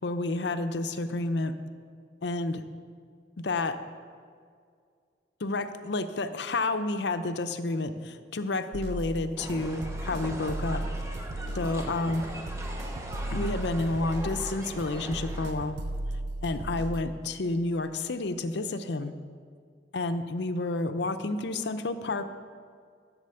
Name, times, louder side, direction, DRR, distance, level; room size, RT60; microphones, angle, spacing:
voice 1, 0.0-1.5 2.2-2.6 3.4-3.8 5.4-10.8 11.5-12.2 13.3-15.7 16.4-19.1 19.9-22.2, left 2 dB, 65° left, 10 dB, 0.6 m, -30 dB
sound 1, 8.7-17.0, right 1 dB, 65° right, 0.6 m, -36 dB
sound 2, 9.4-15.5, right 1 dB, 15° right, 1.0 m, -41 dB
12.0 x 7.2 x 6.8 m, 2.2 s
head